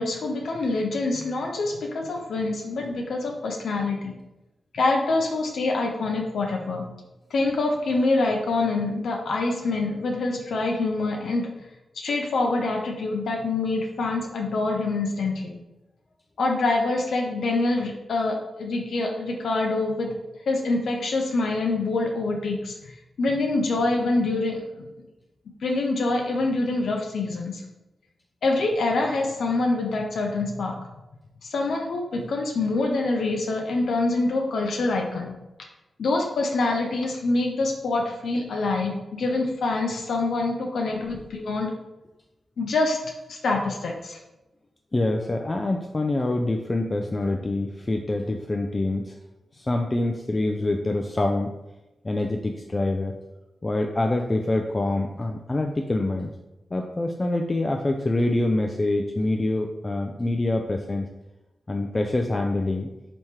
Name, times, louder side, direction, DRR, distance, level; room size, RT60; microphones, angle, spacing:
voice 1, 0.0-4.2 4.7-6.9 7.3-11.5 11.9-15.6 16.4-20.1 20.5-24.9 25.6-27.6 28.4-30.8 31.4-35.3 36.0-41.7 42.6-43.0 43.3-44.2, left 2 dB, 75° left, 1 dB, 0.6 m, -25 dB
voice 2, 44.9-49.2 49.5-51.5 52.0-53.1 53.6-56.3 56.7-61.1 61.7-62.9, left 2 dB, 35° left, 3 dB, 0.4 m, -25 dB
3.5 x 3.0 x 4.3 m, 0.99 s
supercardioid pair, 45°, 0 cm